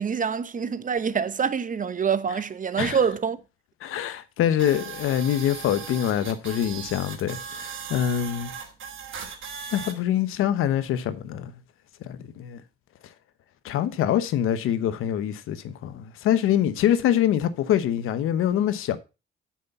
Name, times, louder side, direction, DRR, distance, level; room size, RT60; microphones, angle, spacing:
voice 1, 0.0-3.4, right 6 dB, 40° right, 0.9 m, -26 dB
voice 2, 3.8-8.5 9.7-11.5 12.0-12.6 13.6-19.0, left 10 dB, 85° left, 1.0 m, -25 dB
sound 1, 4.6-9.9, right 7 dB, 70° right, 2.8 m, -38 dB
8.1 x 6.4 x 5.5 m
cardioid pair, 85°, 21 cm